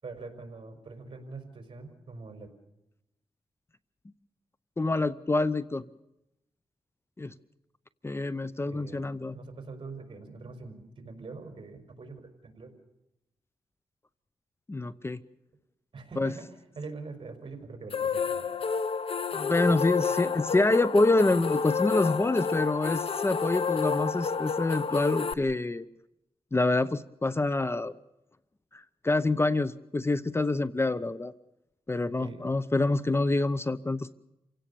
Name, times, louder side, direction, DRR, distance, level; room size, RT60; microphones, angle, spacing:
voice 1, 0.0-2.5 8.6-9.0 9.3-12.7 15.9-16.5 16.8-18.4 32.2-32.4, right 3 dB, 50° right, 5 dB, 5.2 m, -43 dB
voice 2, 4.8-5.8 7.2-7.3 8.0-9.4 14.7-15.2 16.2-16.3 19.3-25.9 26.5-27.9 28.7-31.3 31.9-34.1, left 2 dB, 25° left, 16 dB, 0.7 m, -26 dB
sound 1, 17.9-25.3, left 5 dB, 60° left, 0.8 m, -30 dB
28.5 x 17.0 x 7.0 m, 0.87 s
cardioid pair, 80°, 11 cm